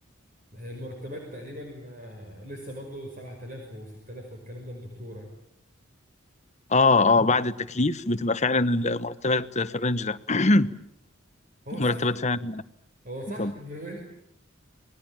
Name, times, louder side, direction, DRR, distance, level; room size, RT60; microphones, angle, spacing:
voice 1, 0.5-5.3 11.6-12.0 13.0-14.0, equal, 40° right, 1 dB, 5.7 m, -39 dB
voice 2, 6.7-10.7 11.7-12.6 13.4-13.5, left 3 dB, 35° left, 12 dB, 1.1 m, -23 dB
28.5 x 20.5 x 8.9 m, 0.72 s
head